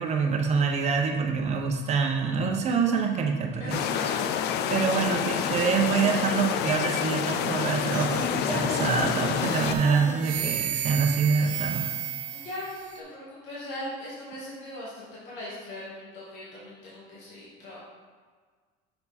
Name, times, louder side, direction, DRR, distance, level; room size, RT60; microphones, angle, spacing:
voice 1, 0.0-4.2 4.7-11.9, right 5 dB, 35° right, 2 dB, 0.8 m, -26 dB
voice 2, 3.6-4.3 12.3-17.8, left 1 dB, 75° left, -7 dB, 2.0 m, -39 dB
sound 1, 3.7-9.7, left 9 dB, 60° left, 0.4 m, -28 dB
Child speech kid speaking, 5.1-5.7 6.4-7.3 7.8-10.9, left 2 dB, 40° left, 1.8 m, -39 dB
sound 2, 7.9-8.9 9.4-13.0, right 10 dB, 80° right, 0.7 m, -34 dB
6.7 x 4.6 x 4.2 m, 1.5 s
cardioid pair, 140°, 19 cm